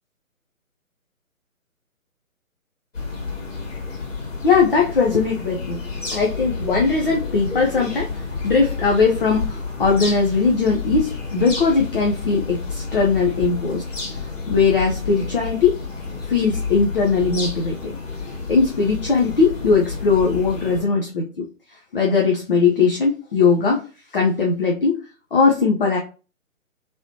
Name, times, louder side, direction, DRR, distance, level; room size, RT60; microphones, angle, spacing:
sound 1, 2.9-20.8, left 4 dB, 60° left, 1.7 m, -30 dB
voice 1, 4.4-13.8 14.1-15.8 16.3-17.9 18.2-21.5 21.9-23.9 24.1-25.0 25.3-26.0, left 4 dB, 40° left, -1 dB, 0.6 m, -20 dB
3.1 x 2.8 x 2.7 m, 0.35 s
figure-of-eight pair, 145°, 42 cm